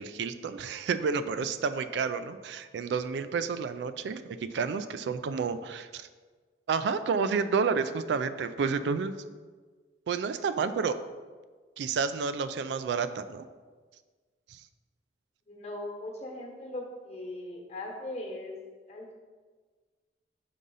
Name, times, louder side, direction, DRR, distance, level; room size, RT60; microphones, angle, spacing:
voice 1, 0.0-6.1 6.7-9.2 10.1-11.0 11.8-13.5 14.5-14.6, right 5 dB, 70° right, 12 dB, 0.3 m, -30 dB
voice 2, 15.5-18.5 18.9-19.1, left 1 dB, 35° left, 0 dB, 1.1 m, -39 dB
5.4 x 3.7 x 5.4 m, 1.4 s
head